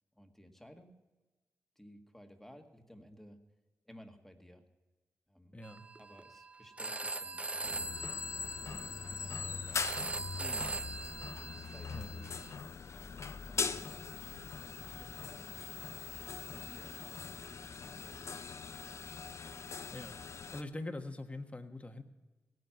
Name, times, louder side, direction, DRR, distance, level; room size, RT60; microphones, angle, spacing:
voice 1, 0.1-0.9 1.8-3.4 3.9-4.6 5.3-5.6 6.0-8.3 8.7-9.9 10.4-11.0 11.5-12.4 12.9-14.5 15.0-16.0 16.5-18.3 18.6-19.1, equal, 5° left, 4 dB, 1.8 m, -56 dB
voice 2, 5.5-5.8 11.9-12.1 19.9-20.2 20.5-22.0, left 2 dB, 25° left, 6 dB, 1.4 m, -43 dB
Telephone, 5.6-12.5, right 2 dB, 20° right, 0.5 m, -42 dB
sound 1, 7.6-20.6, left 5 dB, 60° left, 0.7 m, -41 dB
17.0 x 9.4 x 5.9 m, 1.2 s
cardioid pair, 60°, 6 cm